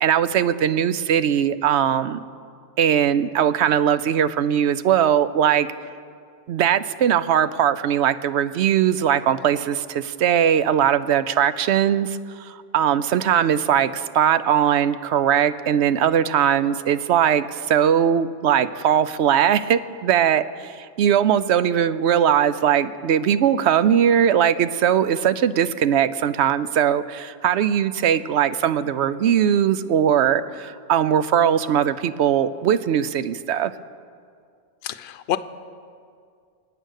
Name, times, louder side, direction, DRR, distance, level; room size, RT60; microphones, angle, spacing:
voice 1, 0.0-2.2 2.8-5.7 6.5-33.7, right 9 dB, 80° right, 14 dB, 0.9 m, -20 dB
voice 2, 34.8-35.4, left 12 dB, 70° left, 11 dB, 0.8 m, -27 dB
24.5 x 9.0 x 6.4 m, 2.2 s
omnidirectional pair, 1.1 m